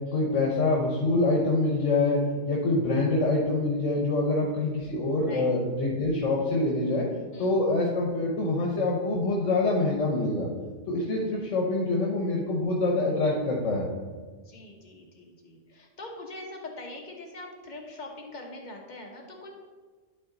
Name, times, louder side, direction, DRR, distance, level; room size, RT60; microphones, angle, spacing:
voice 1, 0.1-2.2 2.4-7.0 7.4-10.5 10.9-13.9, left 2 dB, 75° left, -2 dB, 1.3 m, -25 dB
voice 2, 14.4-19.5, left 2 dB, 40° left, 1 dB, 1.2 m, -43 dB
11.5 x 3.9 x 3.9 m, 1.4 s
omnidirectional pair, 1.3 m